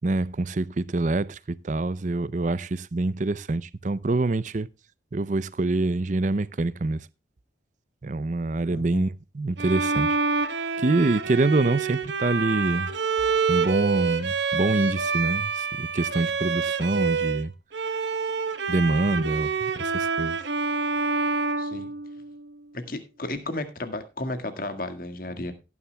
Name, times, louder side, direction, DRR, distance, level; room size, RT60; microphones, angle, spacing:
voice 1, 0.0-4.7 5.1-7.1 8.0-10.2 10.8-12.9 13.5-17.5 18.7-20.4, right 2 dB, 40° right, 0.5 m, -25 dB
voice 2, 8.7-9.0 21.6-21.9 22.7-25.5, left 2 dB, 50° left, 1.8 m, -33 dB
Bowed string instrument, 9.6-17.4 17.7-22.5, right 5 dB, 80° right, 1.2 m, -27 dB
17.0 x 9.7 x 2.2 m
head